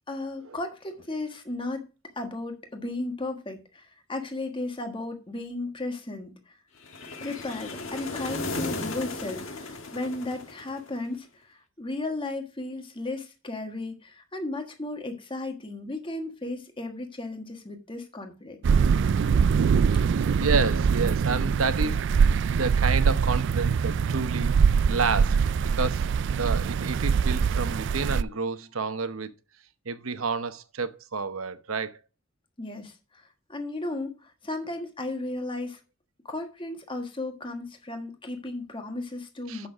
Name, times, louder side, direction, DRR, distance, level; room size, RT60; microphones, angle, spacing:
voice 1, 0.1-1.8 2.1-6.5 7.2-18.6 32.6-35.8 36.2-39.7, left 2 dB, 25° left, 1.5 m, -35 dB
sound 1, 6.8-11.1, left 2 dB, 65° left, 1.6 m, -35 dB
sound 2, 18.6-28.2, right 6 dB, 60° right, 0.3 m, -23 dB
voice 2, 20.0-22.0 22.5-24.5 24.9-26.1 26.4-29.3 29.9-32.0 39.5-39.7, right 4 dB, 80° right, 0.9 m, -30 dB
7.9 x 6.7 x 5.0 m
head